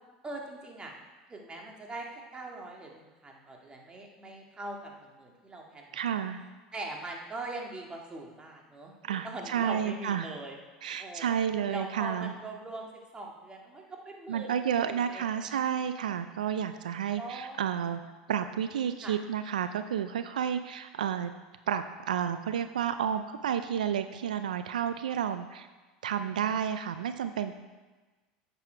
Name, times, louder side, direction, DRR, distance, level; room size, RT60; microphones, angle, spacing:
voice 1, 0.2-1.0 1.3-6.2 6.7-10.6 11.0-11.4 11.7-15.6 17.2-17.7 19.0-19.1, right 2 dB, 20° right, 0 dB, 1.9 m, -42 dB
voice 2, 5.9-6.4 9.0-10.4 10.8-12.3 14.3-18.0 18.3-21.3 21.7-25.7 26.0-27.5, right 8 dB, 90° right, 10 dB, 0.4 m, -31 dB
9.5 x 6.9 x 4.5 m, 1.3 s
hypercardioid pair, 90°, 4 cm